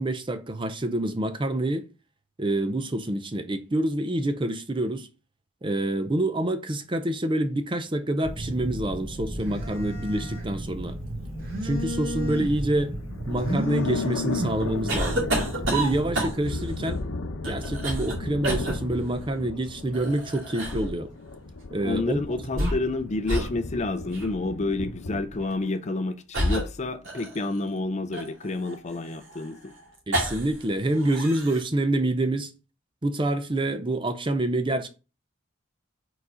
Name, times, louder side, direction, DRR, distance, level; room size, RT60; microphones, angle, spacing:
voice 1, 0.0-1.8 2.4-5.1 5.6-11.0 11.6-13.0 13.3-15.3 15.7-17.0 17.4-21.1 21.7-22.2 22.6-22.7 30.1-32.5 33.0-34.9, right 1 dB, 25° right, 0.5 m, -27 dB
Telephone, 8.2-16.3, equal, 45° right, 2.5 m, -32 dB
sound 1, 12.3-25.4, left 3 dB, 75° left, 0.8 m, -36 dB
sound 2, 14.9-16.6 17.4-18.2 18.4-18.8 19.9-20.9 22.4-23.0 23.3-23.5 24.1-24.3 25.4-25.6 26.3-27.6 28.1-30.6 30.9-31.6, right 1 dB, 65° right, 2.3 m, -29 dB
voice 2, 21.8-29.7, left 2 dB, 35° left, 0.5 m, -29 dB
4.8 x 4.0 x 4.9 m
head